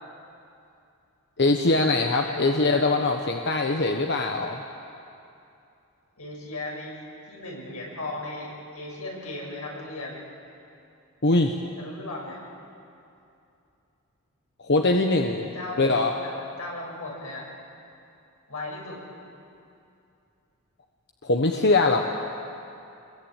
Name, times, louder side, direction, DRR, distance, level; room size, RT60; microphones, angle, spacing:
voice 1, 1.4-4.6 11.2-11.6 14.6-16.1 21.2-22.1, left 2 dB, 50° left, 3 dB, 1.3 m, -22 dB
voice 2, 2.3-2.8 6.2-7.0 7.3-10.2 11.8-12.4 15.5-17.5 18.5-19.1, left 2 dB, 85° left, -1 dB, 7.1 m, -36 dB
27.5 x 22.0 x 9.0 m, 2.7 s
head